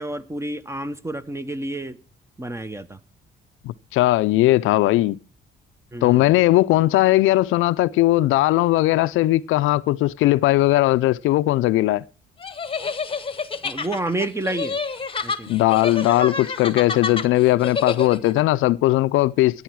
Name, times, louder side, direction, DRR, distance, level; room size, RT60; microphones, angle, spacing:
voice 1, 0.0-2.0 2.4-3.0 5.9-6.3 13.6-14.8 15.2-15.5, right 2 dB, 15° right, 0.9 m, -29 dB
voice 2, 3.6-5.2 6.0-12.0 15.5-19.6, left 17 dB, 90° left, 0.5 m, -18 dB
sound 1, 12.4-18.4, left 4 dB, 25° left, 1.0 m, -28 dB
12.0 x 9.3 x 4.7 m
cardioid pair, 90°, 20 cm